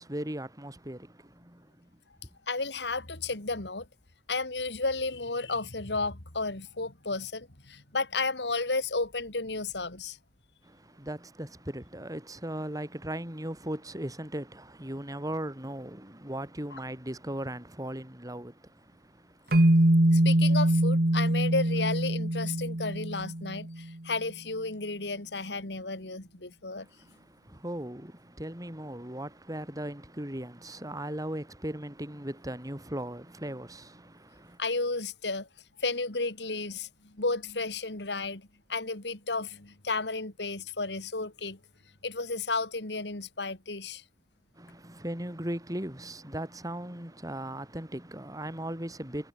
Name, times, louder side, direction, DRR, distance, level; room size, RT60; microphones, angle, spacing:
voice 1, 0.0-1.9 10.6-19.6 26.8-34.6 44.5-49.3, right 1 dB, 20° right, 4.8 m, -38 dB
voice 2, 2.5-3.9 4.3-10.2 16.7-16.8 20.1-26.9 34.6-35.5 35.8-41.6 42.0-44.0, left 3 dB, 75° left, 3.0 m, -33 dB
sound 1, 19.5-23.8, right 1 dB, 60° right, 1.9 m, -23 dB
head